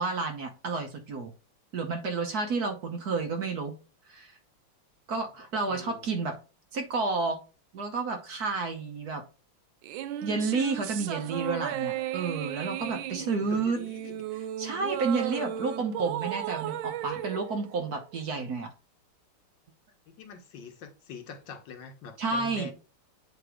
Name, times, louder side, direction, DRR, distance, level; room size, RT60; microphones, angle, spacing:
voice 1, 0.0-1.3 1.7-3.7 4.1-4.4 5.1-6.4 6.7-7.4 7.7-9.2 10.2-13.8 14.3-18.7 22.2-22.7, right 4 dB, 55° right, 1.3 m, -31 dB
voice 2, 5.7-6.1 13.2-14.2 20.1-22.7, left 5 dB, 65° left, 1.5 m, -44 dB
sound 1, 9.8-18.4, right 12 dB, 75° right, 1.3 m, -35 dB
8.0 x 3.0 x 4.9 m
omnidirectional pair, 2.3 m